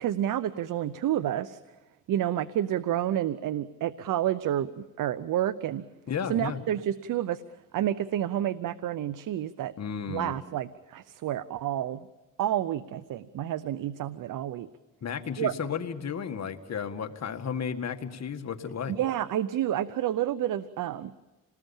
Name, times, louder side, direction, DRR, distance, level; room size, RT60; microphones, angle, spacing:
voice 1, 0.0-1.6 2.1-5.8 6.3-7.4 7.7-9.7 10.1-12.0 12.4-14.7 15.4-15.5 18.9-21.1, right 11 dB, 80° right, 15 dB, 0.7 m, -29 dB
voice 2, 6.1-6.6 9.8-10.3 15.0-18.9, left 7 dB, 55° left, 6 dB, 1.9 m, -33 dB
27.5 x 19.5 x 7.2 m, 1.1 s
cardioid pair, 85°, 31 cm